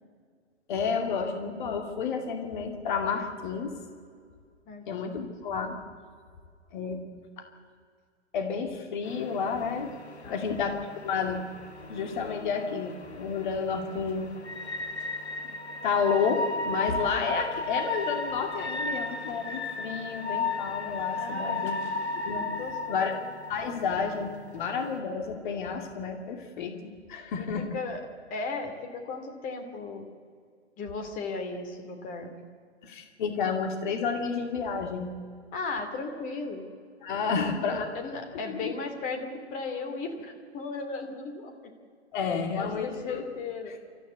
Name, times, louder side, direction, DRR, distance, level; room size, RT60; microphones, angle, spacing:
voice 1, 0.7-3.7 4.9-5.8 6.7-7.0 8.3-9.9 10.3-11.5 11.8-14.3 15.8-21.8 22.2-22.6 22.9-23.1 23.5-27.7 32.8-35.1 37.0-37.9 38.6-38.7 42.1-43.2, left 5 dB, 45° left, 4 dB, 2.6 m, -30 dB
voice 2, 4.7-5.2 10.2-10.9 21.2-21.7 22.6-23.2 27.4-28.0 28.3-30.1 30.8-32.3 35.5-36.6 37.4-41.7 42.5-43.7, left 4 dB, 25° left, 5 dB, 2.7 m, -36 dB
sound 1, 9.1-25.0, left 2 dB, 70° left, 2.1 m, -35 dB
28.5 x 14.0 x 8.2 m, 2.1 s
figure-of-eight pair, 115°, 34 cm